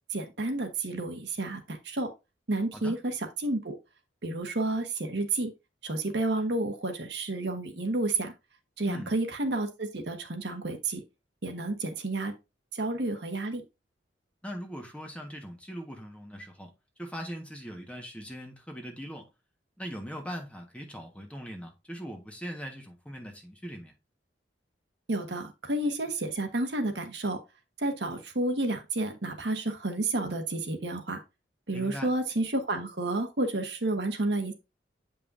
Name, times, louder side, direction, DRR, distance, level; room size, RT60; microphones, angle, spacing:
voice 1, 0.1-2.1 2.5-3.8 4.2-5.5 5.8-8.3 8.8-11.0 11.4-12.3 12.7-13.6 25.1-27.4 27.8-31.2 31.7-34.5, right 2 dB, 65° right, 1.2 m, -30 dB
voice 2, 14.4-16.7 17.0-19.3 19.8-23.9 31.7-32.1, equal, 5° left, 1.3 m, -40 dB
8.0 x 5.3 x 2.6 m
head